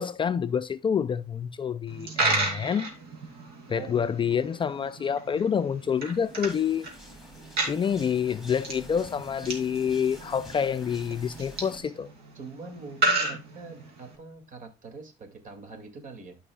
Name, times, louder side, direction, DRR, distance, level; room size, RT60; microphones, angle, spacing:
voice 1, 0.0-2.9 3.7-6.9 7.7-12.1, left 7 dB, 30° left, 0.4 m, -27 dB
Coin (dropping), 1.9-14.2, right 2 dB, 75° right, 2.8 m, -33 dB
sound 1, 5.9-11.8, left 1 dB, ahead, 3.2 m, -48 dB
voice 2, 12.4-16.4, right 3 dB, 50° right, 2.3 m, -43 dB
12.5 x 5.5 x 2.3 m
cardioid pair, 110°, 17 cm